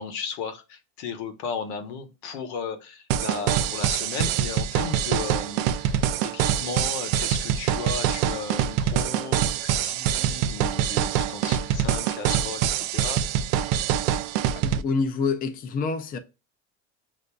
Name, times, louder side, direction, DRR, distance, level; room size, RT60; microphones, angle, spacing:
voice 1, 0.0-13.2, left 6 dB, 90° left, 0.9 m, -35 dB
sound 1, 3.1-14.8, right 10 dB, 75° right, 0.5 m, -25 dB
voice 2, 14.5-16.2, left 4 dB, 25° left, 0.5 m, -27 dB
6.7 x 2.6 x 2.2 m
cardioid pair, 140°, 32 cm